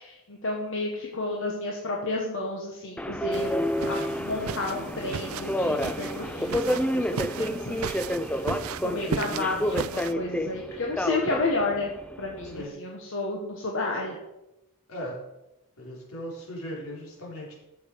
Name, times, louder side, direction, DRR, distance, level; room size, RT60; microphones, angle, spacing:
voice 1, 0.0-7.9 8.3-8.4 8.8-11.9 12.2-14.2, left 2 dB, 60° left, -1 dB, 1.5 m, -31 dB
Subway metro underground, 3.0-12.7, equal, 5° left, 0.4 m, -30 dB
sound 1, 3.3-10.1, right 6 dB, 75° right, 0.4 m, -36 dB
voice 2, 12.4-12.7 14.9-15.1 15.8-17.5, equal, 80° left, -4 dB, 4.4 m, -38 dB
13.0 x 7.4 x 4.8 m, 0.94 s
head